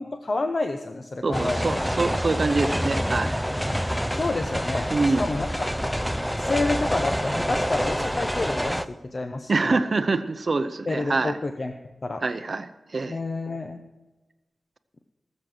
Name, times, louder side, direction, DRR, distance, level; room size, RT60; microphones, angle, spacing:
voice 1, 0.0-1.8 4.1-5.5 6.3-9.8 10.9-11.7 12.0-12.2 13.1-13.8, left 2 dB, 40° left, 6 dB, 0.8 m, -29 dB
voice 2, 1.2-3.4 4.9-5.3 9.5-11.4 12.2-13.2, right 3 dB, 45° right, 11 dB, 0.7 m, -25 dB
sound 1, 1.3-8.8, equal, ahead, 0.5 m, -27 dB
19.0 x 7.5 x 6.2 m, 1.1 s
wide cardioid pair, 130°, 0 cm